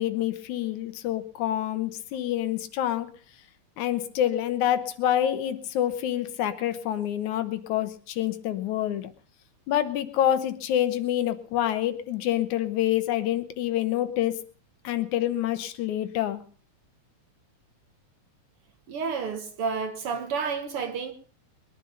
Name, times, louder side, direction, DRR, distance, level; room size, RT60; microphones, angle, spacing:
voice 1, 0.0-3.1 3.8-9.1 9.7-14.3 14.8-16.4, left 11 dB, 80° left, 2.5 m, -27 dB
voice 2, 18.9-21.1, right 5 dB, 55° right, 1.9 m, -30 dB
21.0 x 10.5 x 5.4 m
omnidirectional pair, 3.4 m